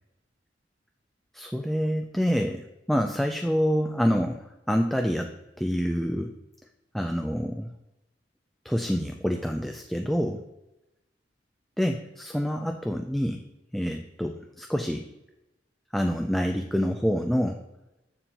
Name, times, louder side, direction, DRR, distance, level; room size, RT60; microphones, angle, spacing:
voice 1, 1.3-5.3 5.6-6.3 6.9-7.7 8.6-10.4 11.8-13.4 13.7-15.1 15.9-17.6, equal, ahead, 3 dB, 0.3 m, -27 dB
7.0 x 7.0 x 2.9 m, 0.94 s
head